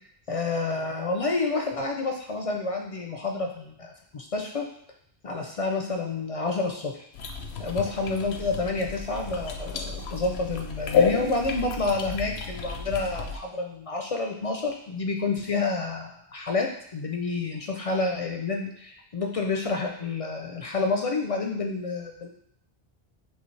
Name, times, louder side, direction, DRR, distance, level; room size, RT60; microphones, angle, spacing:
voice 1, 0.3-4.6 5.2-7.0 7.6-22.3, left 3 dB, 50° left, 2 dB, 0.4 m, -29 dB
sound 1, 7.1-13.4, left 5 dB, 85° left, 0.8 m, -30 dB
5.5 x 2.9 x 3.2 m, 0.67 s
omnidirectional pair, 1.0 m